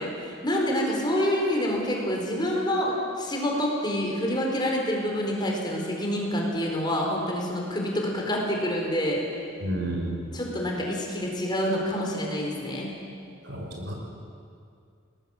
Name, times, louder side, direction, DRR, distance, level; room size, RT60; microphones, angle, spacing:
voice 1, 0.0-9.3 10.3-12.9, equal, 20° left, -1 dB, 4.5 m, -27 dB
voice 2, 9.6-10.1 13.4-13.9, right 1 dB, 60° right, 0 dB, 5.5 m, -31 dB
30.0 x 20.0 x 7.4 m, 2.3 s
head